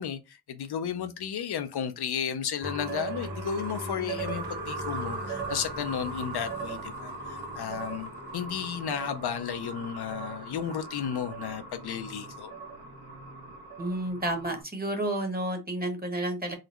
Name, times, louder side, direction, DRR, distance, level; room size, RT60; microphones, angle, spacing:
voice 1, 0.0-12.5, left 8 dB, 70° left, 0.5 m, -33 dB
sound 1, 2.6-14.6, right 3 dB, 70° right, 1.5 m, -38 dB
voice 2, 13.8-16.5, right 1 dB, 20° right, 1.1 m, -31 dB
3.8 x 2.1 x 2.9 m
wide cardioid pair, 90°, 40 cm